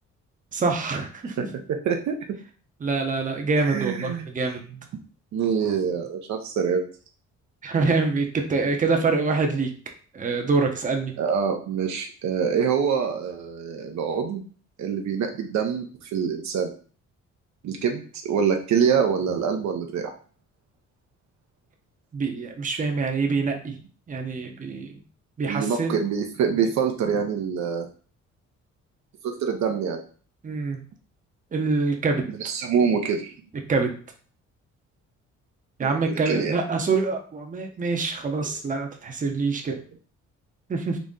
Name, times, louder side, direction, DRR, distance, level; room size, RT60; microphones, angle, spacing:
voice 1, 0.5-1.4 2.8-4.6 7.6-9.7 10.1-11.1 22.1-23.8 24.1-25.0 25.4-26.0 30.4-30.8 31.5-32.2 33.7-33.9 35.8-39.7 40.7-41.0, right 4 dB, 25° right, 3 dB, 0.7 m, -25 dB
voice 2, 1.4-2.2 3.6-4.3 5.3-6.9 11.2-14.4 14.8-15.8 16.1-16.7 17.6-20.1 25.4-27.9 29.2-30.0 32.4-33.3 35.8-36.5, right 7 dB, 65° right, 4 dB, 0.6 m, -25 dB
3.9 x 2.1 x 3.6 m, 0.42 s
cardioid pair, 90°, 30 cm